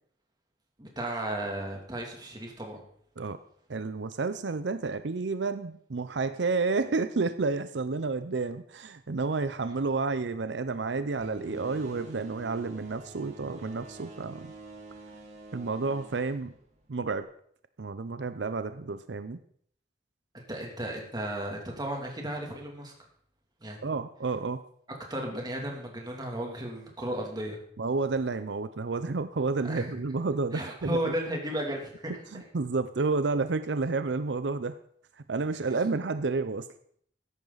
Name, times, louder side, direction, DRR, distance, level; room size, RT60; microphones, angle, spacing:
voice 1, 0.8-2.8 20.3-22.9 23.6-23.9 25.1-27.6 29.6-30.0 30.5-32.1, right 1 dB, 25° right, 0 dB, 2.8 m, -34 dB
voice 2, 3.7-14.5 15.5-16.5 16.9-17.3 17.8-19.4 23.8-24.6 27.8-31.1 32.3-34.8 35.1-36.7, right 3 dB, 90° right, 12 dB, 0.6 m, -30 dB
sound 1, 11.2-17.2, right 3 dB, 40° right, 3.2 m, -47 dB
14.0 x 10.5 x 4.0 m, 0.62 s
head